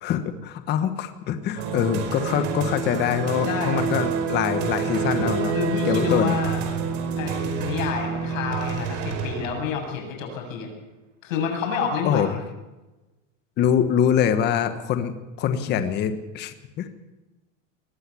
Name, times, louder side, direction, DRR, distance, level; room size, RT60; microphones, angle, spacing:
voice 1, 0.0-5.5 5.8-6.3 12.0-12.4 13.6-15.1 15.4-16.9, left 9 dB, 25° left, 10 dB, 1.3 m, -24 dB
sound 1, 1.6-9.9, right 6 dB, 60° right, 4.9 m, -27 dB
voice 2, 3.4-3.8 5.1-6.6 7.2-10.7 11.2-12.3, left 6 dB, 80° left, 3 dB, 7.7 m, -29 dB
21.0 x 14.5 x 8.5 m, 1.1 s
supercardioid pair, 175°, 39 cm